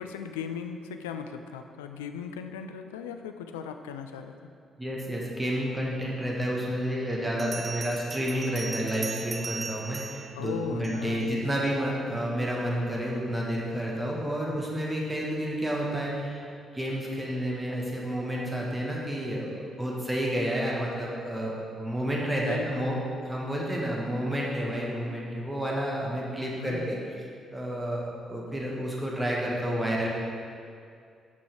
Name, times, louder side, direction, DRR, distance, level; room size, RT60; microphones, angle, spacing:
voice 1, 0.0-4.5 10.3-11.4 22.4-23.0 26.4-26.9, left 7 dB, 75° left, 7 dB, 0.3 m, -38 dB
voice 2, 4.8-16.5 16.7-27.0 27.5-28.0 28.3-30.1, equal, 15° right, -3 dB, 1.9 m, -30 dB
Bell, 7.4-11.3, right 4 dB, 40° right, 0.5 m, -39 dB
7.4 x 6.2 x 4.8 m, 2.4 s
figure-of-eight pair, 40°, 0 cm